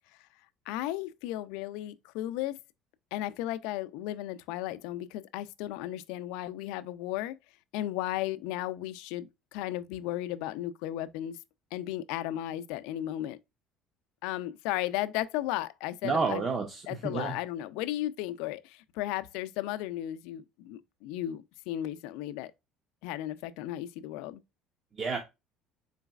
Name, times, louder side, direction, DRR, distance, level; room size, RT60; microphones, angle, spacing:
voice 1, 0.7-2.6 3.1-7.4 7.7-11.4 11.7-13.4 14.2-16.4 16.9-22.5 23.0-24.4, left 14 dB, 80° left, 0.4 m, -35 dB
voice 2, 16.0-17.3 25.0-25.2, right 4 dB, 30° right, 0.7 m, -30 dB
4.0 x 3.9 x 2.3 m
cardioid pair, 135°, 0 cm